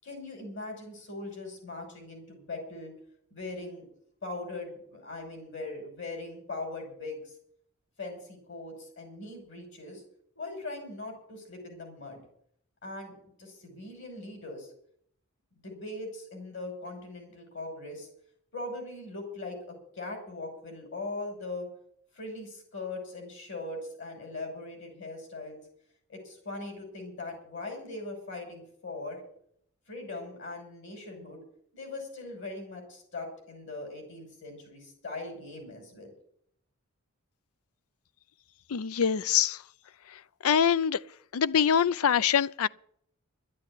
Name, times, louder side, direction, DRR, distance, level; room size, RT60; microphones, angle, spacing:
voice 1, 0.0-2.9 3.3-3.8 4.2-7.2 8.0-10.0 10.4-12.2 12.8-14.7 15.6-18.1 18.5-21.7 22.1-25.6 26.1-29.2 29.9-31.4 31.7-36.1, left 2 dB, 60° left, 6.0 m, -40 dB
voice 2, 38.7-39.6 40.4-41.0 41.3-42.7, left 8 dB, 90° left, 0.5 m, -24 dB
12.5 x 8.6 x 10.0 m
head